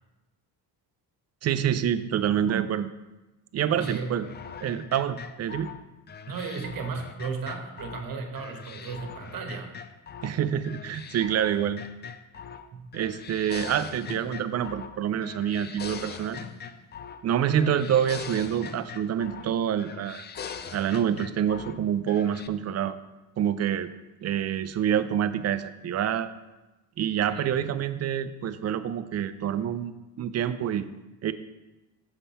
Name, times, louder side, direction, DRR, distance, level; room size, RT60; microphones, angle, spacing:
voice 1, 1.4-2.9 3.5-4.3 4.6-5.7 10.2-11.8 12.9-16.4 17.2-20.3 20.7-22.9 23.4-23.9 24.2-26.3 27.0-30.9 31.2-31.3, right 9 dB, 40° right, 12 dB, 0.4 m, -27 dB
voice 2, 3.6-4.2 6.3-9.8 12.7-12.9 27.3-27.6, right 5 dB, 55° right, 4 dB, 1.2 m, -35 dB
sound 1, 3.8-8.1 8.4-10.3 10.6-12.7 12.9-15.0 15.2-17.2 17.5-19.5 19.8-21.8 22.1-22.5, left 7 dB, 25° left, 0.3 m, -41 dB
7.0 x 5.3 x 4.2 m, 1.1 s
cardioid pair, 95°, 41 cm